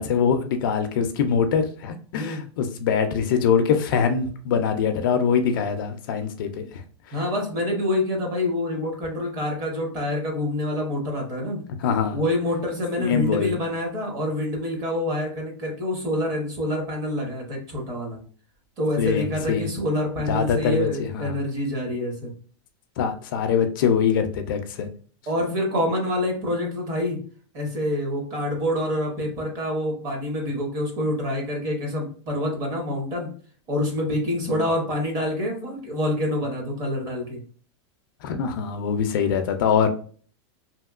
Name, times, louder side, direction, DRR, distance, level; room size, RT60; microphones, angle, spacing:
voice 1, 0.0-6.6 11.8-12.2 13.0-13.6 19.0-19.7 20.3-21.3 23.0-24.9 34.5-34.6 38.2-39.9, left 7 dB, 45° left, 7 dB, 0.4 m, -23 dB
voice 2, 7.1-11.6 12.1-18.2 18.8-22.3 25.3-27.2 27.5-33.3 33.7-37.4, left 1 dB, 25° right, 1 dB, 0.7 m, -27 dB
2.8 x 2.8 x 2.3 m, 0.42 s
supercardioid pair, 175°, 15 cm